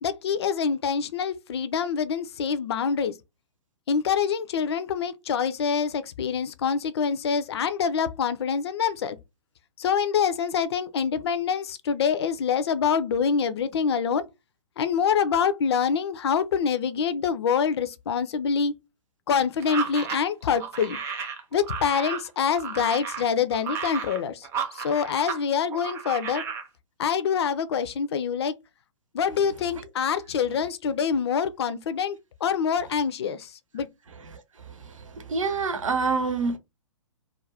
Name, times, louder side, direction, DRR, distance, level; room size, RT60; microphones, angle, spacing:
voice 1, 0.0-3.1 3.9-9.2 9.8-14.2 14.8-18.7 19.3-21.0 21.5-24.4 24.7-26.4 27.0-28.5 29.1-33.5 33.7-33.9, left 7 dB, 50° left, 0.4 m, -25 dB
sound 1, 19.6-25.4 25.7-26.7, right 7 dB, 15° right, 0.4 m, -33 dB
voice 2, 35.3-36.6, right 4 dB, 70° right, 0.7 m, -25 dB
2.4 x 2.2 x 3.2 m
figure-of-eight pair, 120°, 17 cm